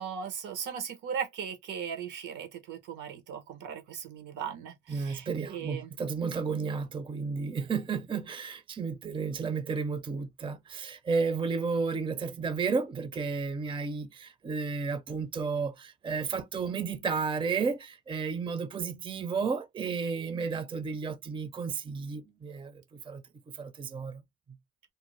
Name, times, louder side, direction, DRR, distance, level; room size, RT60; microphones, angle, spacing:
voice 1, 0.0-5.9, right 7 dB, 85° right, 0.9 m, -38 dB
voice 2, 4.9-23.2 23.5-24.2, right 5 dB, 15° right, 0.4 m, -32 dB
2.6 x 2.0 x 3.0 m
cardioid pair, 90°, 30 cm